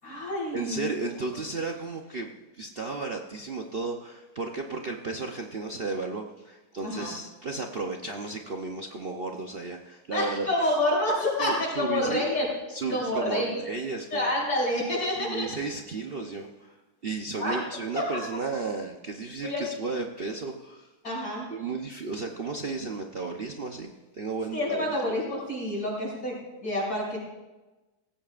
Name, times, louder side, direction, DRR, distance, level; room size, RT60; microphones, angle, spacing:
voice 1, 0.0-0.9 6.8-7.1 10.1-12.5 12.9-13.6 14.1-15.5 17.3-17.6 18.1-18.2 19.4-19.6 21.0-21.5 24.5-27.2, left 1 dB, 65° left, -5 dB, 5.7 m, -28 dB
voice 2, 0.5-10.5 11.4-12.2 12.7-14.3 15.2-16.7 17.0-20.9 21.5-24.8, right 3 dB, 45° right, 2 dB, 0.8 m, -34 dB
18.0 x 15.5 x 2.5 m, 1.1 s
omnidirectional pair, 1.8 m